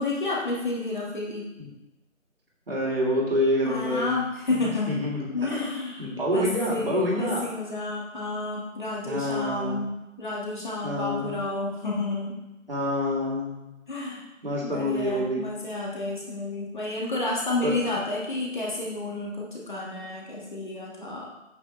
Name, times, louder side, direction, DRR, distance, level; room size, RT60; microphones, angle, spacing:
voice 1, 0.0-1.5 3.6-5.0 5.3-12.4 13.9-14.3 14.6-21.3, left 2 dB, 35° left, -4 dB, 1.9 m, -31 dB
voice 2, 2.7-4.1 4.9-5.6 6.0-7.4 9.0-9.8 10.8-11.4 12.7-13.7 14.4-15.4 17.6-17.7, left 1 dB, 45° right, -4 dB, 2.9 m, -27 dB
8.6 x 7.6 x 3.3 m, 0.98 s
figure-of-eight pair, 165°, 40 cm